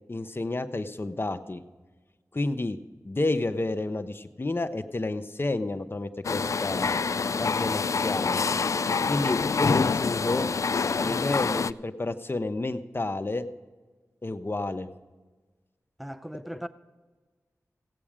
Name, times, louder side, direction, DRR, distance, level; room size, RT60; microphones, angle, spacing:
voice 1, 0.1-1.6 2.3-2.8 3.0-7.0 7.4-8.4 9.1-10.5 10.9-13.5 14.2-14.9, left 2 dB, 40° left, 1.0 m, -30 dB
sound 1, 6.2-11.7, left 5 dB, 60° left, 0.3 m, -26 dB
voice 2, 11.0-11.4 16.0-16.7, equal, ahead, 0.7 m, -38 dB
16.5 x 8.5 x 5.0 m
cardioid pair, 45°, 6 cm